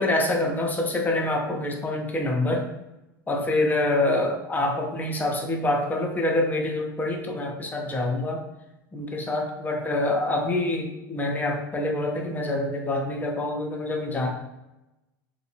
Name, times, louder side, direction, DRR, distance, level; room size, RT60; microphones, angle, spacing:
voice 1, 0.0-2.7 3.3-8.4 8.9-14.3, left 2 dB, 15° left, 1 dB, 0.5 m, -26 dB
2.6 x 2.2 x 2.7 m, 0.95 s
figure-of-eight pair, 80°, 12 cm